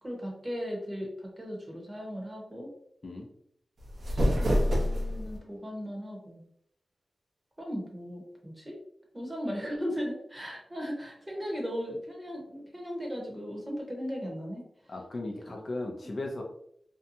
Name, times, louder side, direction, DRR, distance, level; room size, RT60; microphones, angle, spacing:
voice 1, 0.0-2.7 4.1-6.4 7.6-8.8 9.1-14.9 15.5-15.6, equal, 20° right, -1 dB, 0.9 m, -37 dB
sound 1, 3.8-5.4, equal, 70° right, 0.8 m, -27 dB
voice 2, 14.9-16.4, left 2 dB, 45° left, 1 dB, 0.4 m, -36 dB
2.6 x 2.2 x 2.6 m, 0.70 s
wide cardioid pair, 100°, 0 cm